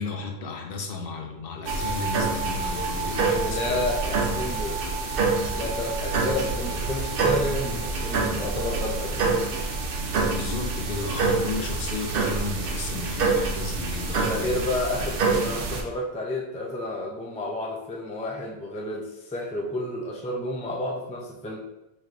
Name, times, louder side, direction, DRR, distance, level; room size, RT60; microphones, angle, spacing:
voice 1, 0.0-3.9 10.2-14.7, left 4 dB, 65° left, 3 dB, 0.7 m, -33 dB
sound 1, 1.7-15.8, right 3 dB, 65° right, 0.7 m, -27 dB
voice 2, 3.3-4.8 5.5-9.3 14.2-21.6, left 1 dB, 10° left, -1 dB, 0.3 m, -31 dB
4.2 x 3.2 x 2.5 m, 0.91 s
omnidirectional pair, 1.0 m